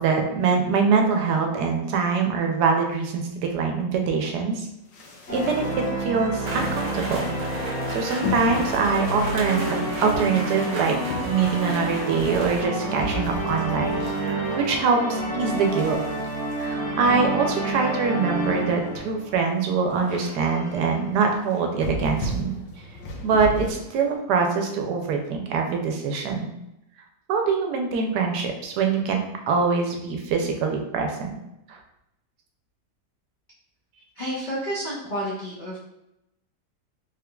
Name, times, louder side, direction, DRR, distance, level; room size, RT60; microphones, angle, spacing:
voice 1, 0.0-4.7 5.3-7.2 7.9-11.0 11.3-16.0 16.6-22.5 23.2-26.5 27.3-31.4 31.7-31.8, right 5 dB, 75° right, 2 dB, 1.1 m, -24 dB
sound 1, 4.9-6.2 6.7-7.0 8.2-15.0 15.4-17.6 18.1-18.2 18.3-18.4 18.9-19.0 19.3-19.5 19.8-20.2 20.6-20.8 21.4-23.7, left 1 dB, 90° left, 1.3 m, -35 dB
sound 2, 5.3-19.7 20.0-21.2 21.8-21.9 22.2-22.3 23.1-24.1, right 2 dB, 5° left, 0.7 m, -29 dB
sound 3, 6.4-12.6, right 2 dB, 50° right, 0.7 m, -37 dB
voice 2, 34.1-35.8, equal, 70° left, -7 dB, 0.4 m, -30 dB
3.6 x 3.5 x 2.2 m, 0.86 s
omnidirectional pair, 1.9 m